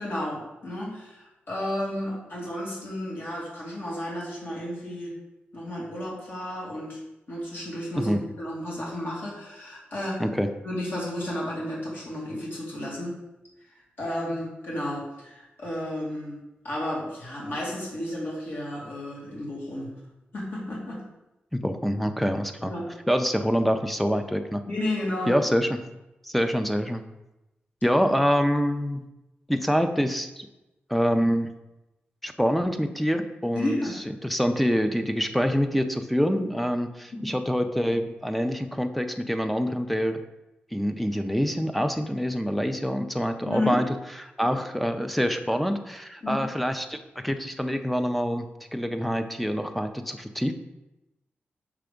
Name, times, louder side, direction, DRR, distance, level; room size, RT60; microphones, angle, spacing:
voice 1, 0.0-5.1 5.5-7.0 7.3-10.2 10.6-13.2 14.0-16.4 16.6-19.9 20.3-21.0 22.6-22.8 24.7-25.4 33.5-34.0 37.1-37.3 43.4-43.8 46.2-46.4, left 1 dB, 60° left, -5 dB, 2.2 m, -32 dB
voice 2, 8.0-8.3 10.2-10.5 21.5-22.7 23.1-24.6 25.3-25.8 26.2-27.1 27.8-29.0 29.5-30.5 30.9-31.5 32.2-33.8 34.2-40.2 40.7-43.9 44.4-50.5, equal, ahead, 7 dB, 0.4 m, -26 dB
5.9 x 3.4 x 5.0 m, 0.96 s
wide cardioid pair, 180°, 4 cm